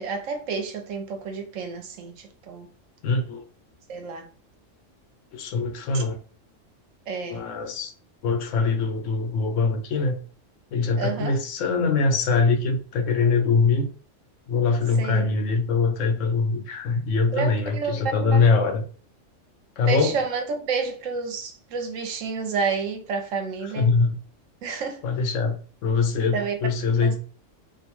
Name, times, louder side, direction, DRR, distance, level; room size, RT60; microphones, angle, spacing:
voice 1, 0.0-2.7 3.9-4.3 5.9-6.0 7.1-7.4 11.0-11.4 15.0-15.3 17.3-18.5 19.9-23.9 24.6-25.0 26.3-26.6 27.0-27.2, right 5 dB, 85° right, 1.0 m, -30 dB
voice 2, 3.0-3.4 5.3-6.2 7.2-7.9 8.2-10.2 10.7-13.9 14.5-18.8 19.8-20.2 23.6-24.2 25.0-27.2, left 4 dB, 75° left, 0.9 m, -23 dB
2.5 x 2.1 x 2.9 m
omnidirectional pair, 1.3 m